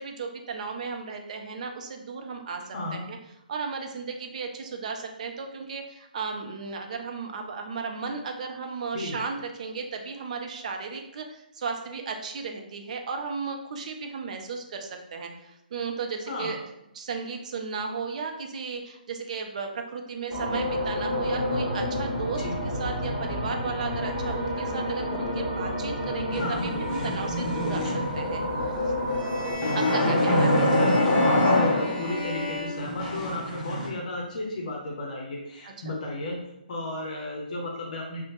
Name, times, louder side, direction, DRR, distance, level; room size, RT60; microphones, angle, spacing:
voice 1, 0.0-3.2 3.5-16.6 16.9-28.9 29.7-31.0 35.6-35.9, right 5 dB, 50° right, 3 dB, 0.4 m, -35 dB
voice 2, 2.7-3.0 8.9-9.2 16.3-16.6 22.4-22.6 26.4-26.6 30.0-36.4 36.7-38.2, left 2 dB, 50° left, -1 dB, 0.6 m, -34 dB
sound 1, 20.3-29.5, left 1 dB, 20° right, 1.3 m, -30 dB
sound 2, 26.3-28.4 29.6-32.3 32.8-33.9, left 1 dB, 25° left, 0.8 m, -24 dB
sound 3, 29.1-33.7, left 2 dB, ahead, 1.1 m, -35 dB
2.8 x 2.0 x 3.1 m, 0.82 s
figure-of-eight pair, 135°, 5 cm